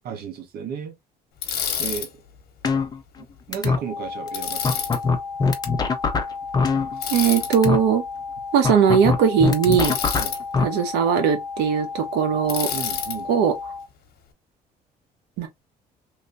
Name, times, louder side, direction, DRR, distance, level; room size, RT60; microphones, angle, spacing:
voice 1, 0.0-1.0 1.8-2.2 3.2-4.9 10.2-10.3 12.7-13.3, right 7 dB, 65° right, 1.2 m, -34 dB
Bicycle, 1.4-2.1 4.3-5.0 7.0-7.5 9.7-10.4 12.5-13.2, left 8 dB, 70° left, 1.1 m, -28 dB
sound 1, 2.6-3.2 3.5-3.8 4.3-4.4 4.6-7.2 7.5-7.8 8.6-10.6, left 4 dB, 25° left, 0.7 m, -22 dB
sound 2, 3.9-13.9, left 5 dB, 10° right, 1.1 m, -34 dB
voice 2, 7.1-8.0 8.5-9.9 10.6-12.7 13.3-13.5 15.4-15.5, right 7 dB, 90° right, 1.0 m, -19 dB
3.2 x 2.9 x 2.5 m
cardioid pair, 110°, 17 cm